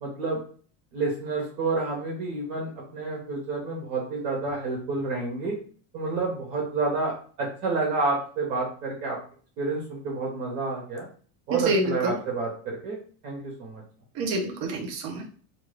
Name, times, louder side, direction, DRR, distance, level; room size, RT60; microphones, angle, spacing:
voice 1, 0.0-0.4 0.9-5.6 5.9-9.2 9.6-11.1 11.5-13.0 13.2-13.8, right 3 dB, 85° right, -3 dB, 1.2 m, -29 dB
voice 2, 11.5-12.1 14.2-15.3, right 2 dB, 50° right, 1 dB, 0.8 m, -27 dB
2.7 x 2.3 x 3.2 m, 0.43 s
supercardioid pair, 140°, 46 cm